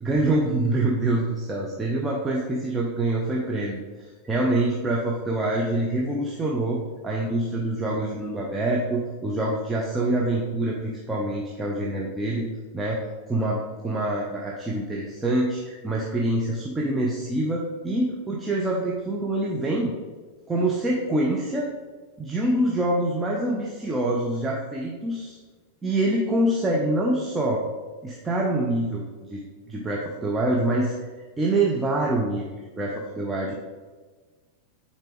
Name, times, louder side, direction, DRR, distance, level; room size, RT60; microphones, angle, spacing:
voice 1, 0.0-3.8 4.2-12.4 12.7-13.0 13.3-19.9 20.5-21.7 22.2-25.4 25.8-27.6 28.0-29.4 29.7-31.0 31.4-33.5, right 1 dB, 15° right, -3 dB, 0.9 m, -25 dB
9.0 x 4.4 x 3.6 m, 1.4 s
figure-of-eight pair, 90°, 0 cm